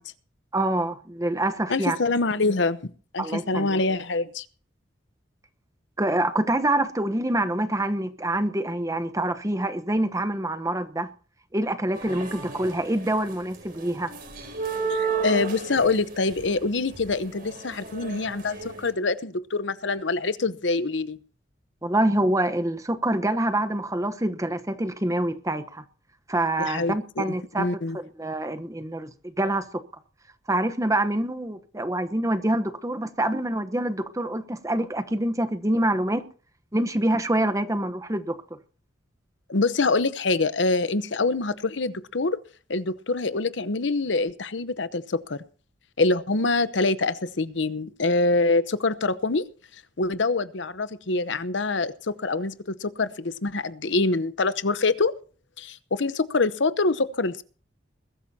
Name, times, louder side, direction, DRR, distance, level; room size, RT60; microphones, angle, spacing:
voice 1, 0.5-2.0 3.2-3.8 6.0-11.1 11.5-14.1 21.8-25.8 26.3-29.1 29.4-29.7 30.5-36.2 36.7-38.4, right 1 dB, 15° right, 1.0 m, -26 dB
voice 2, 1.7-4.4 14.9-21.2 26.6-27.2 27.6-28.0 39.5-42.4 42.7-45.4 46.0-49.5 50.0-55.1 55.6-57.4, left 3 dB, 70° left, 0.9 m, -25 dB
sound 1, 11.9-13.1 13.5-18.9, right 4 dB, 50° right, 4.3 m, -32 dB
21.0 x 13.0 x 2.8 m
head